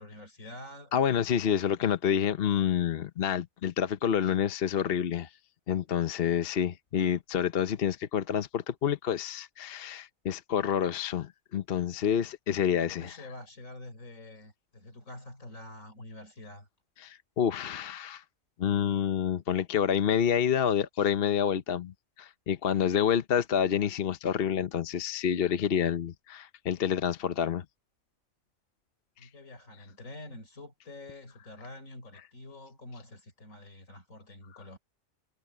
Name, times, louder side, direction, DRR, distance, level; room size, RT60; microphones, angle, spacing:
voice 1, 0.0-0.9 12.8-16.7 29.2-34.8, left 2 dB, 65° left, 4.9 m, -47 dB
voice 2, 0.9-5.3 5.7-13.2 17.0-18.2 18.6-27.6, left 8 dB, 50° left, 0.9 m, -28 dB
omnidirectional pair, 1.5 m